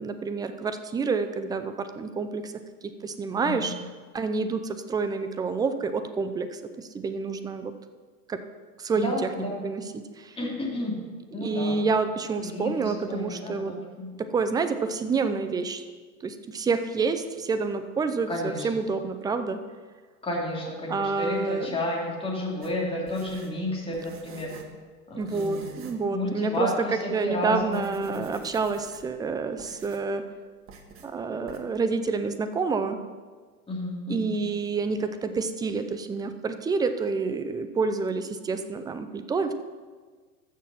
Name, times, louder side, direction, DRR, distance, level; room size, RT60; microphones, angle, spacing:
voice 1, 0.0-2.5 2.8-3.7 4.1-7.7 8.3-8.4 8.8-9.3 9.6-10.4 11.4-13.7 14.2-15.8 16.2-19.6 20.9-21.7 25.1-26.7 27.1-30.3 31.0-33.0 34.1-39.5, right 4 dB, 10° right, 10 dB, 0.5 m, -28 dB
voice 2, 9.0-9.6 10.4-11.0 11.3-11.8 12.4-14.1 18.3-18.8 20.2-24.5 25.1-25.8 26.1-28.3 33.7-34.3, left 1 dB, 10° left, -3 dB, 3.3 m, -31 dB
sound 1, 22.6-24.8 25.2-26.1 26.4-26.5 27.1-27.3 27.6-29.2 29.6-30.1 30.7-31.1 31.5-31.6, right 5 dB, 30° right, 1.6 m, -48 dB
14.0 x 6.5 x 5.8 m, 1.5 s
hypercardioid pair, 100°, 46 cm